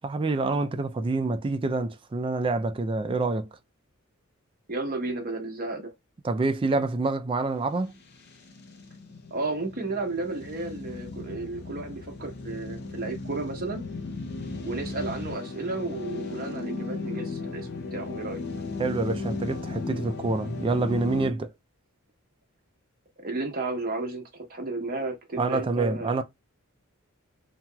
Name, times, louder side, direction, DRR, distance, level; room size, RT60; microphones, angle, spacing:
voice 1, 0.0-3.5 6.2-7.9 18.8-21.5 25.4-26.2, right 3 dB, 25° right, 0.3 m, -27 dB
voice 2, 4.7-5.9 9.3-13.8 14.6-18.4 23.2-26.2, right 3 dB, 45° right, 0.9 m, -33 dB
sound 1, 8.0-21.3, left 3 dB, 50° left, 0.6 m, -36 dB
2.9 x 2.8 x 2.2 m
head